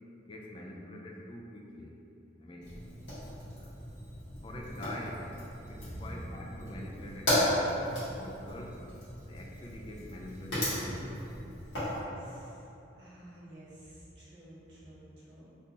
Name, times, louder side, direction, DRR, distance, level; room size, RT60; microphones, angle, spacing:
voice 1, 0.3-1.9 2.4-2.7 3.6-3.7 4.4-5.3 5.7-8.7 9.3-11.1, left 1 dB, 30° left, -1 dB, 0.3 m, -45 dB
Fire, 2.6-12.0, left 1 dB, 80° left, 1.5 m, -35 dB
voice 2, 5.8-6.3 12.0-12.7 13.0-15.4, right 1 dB, 85° right, -9 dB, 1.4 m, -49 dB
3.6 x 2.7 x 2.8 m, 2.8 s
head